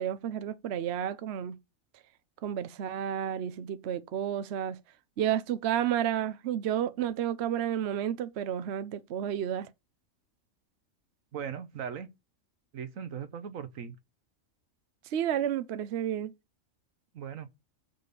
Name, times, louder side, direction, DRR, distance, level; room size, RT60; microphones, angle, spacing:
voice 1, 0.0-1.6 2.4-4.8 5.2-9.7 15.1-16.3, right 10 dB, 60° right, 0.8 m, -31 dB
voice 2, 11.3-12.1 12.7-14.0 17.1-17.5, right 7 dB, 75° right, 1.3 m, -38 dB
6.7 x 5.7 x 6.9 m
omnidirectional pair, 1.4 m